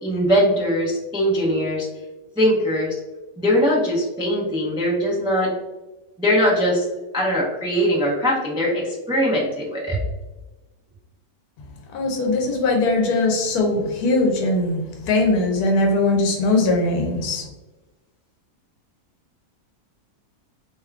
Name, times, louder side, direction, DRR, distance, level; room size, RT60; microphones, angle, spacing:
voice 1, 0.0-1.9 2.4-2.9 3.4-5.5 6.2-6.8 7.1-10.0, equal, 5° right, -6 dB, 0.4 m, -21 dB
voice 2, 11.9-17.5, left 2 dB, 90° left, 1 dB, 1.2 m, -20 dB
3.5 x 2.9 x 2.3 m, 1.1 s
omnidirectional pair, 1.6 m